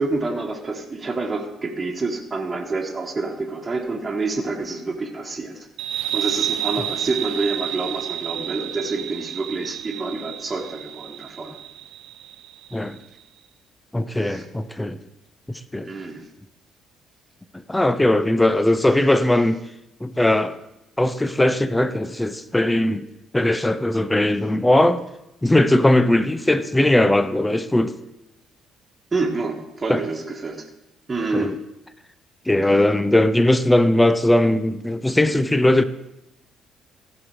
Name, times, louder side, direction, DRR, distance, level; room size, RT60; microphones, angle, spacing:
voice 1, 0.0-5.7 6.1-11.6 14.1-14.5 15.8-16.3 29.1-30.7 31.1-31.5, right 3 dB, 30° right, 1.5 m, -27 dB
sound 1, 5.8-13.0, right 11 dB, 65° right, 0.4 m, -30 dB
voice 2, 13.9-15.0 15.5-15.9 17.7-19.6 20.0-20.6 21.0-23.0 23.3-25.0 25.4-27.9 29.9-30.0 31.3-31.5 32.5-35.8, left 1 dB, 10° left, 0.7 m, -19 dB
15.0 x 6.3 x 4.7 m
figure-of-eight pair, 45°, 0 cm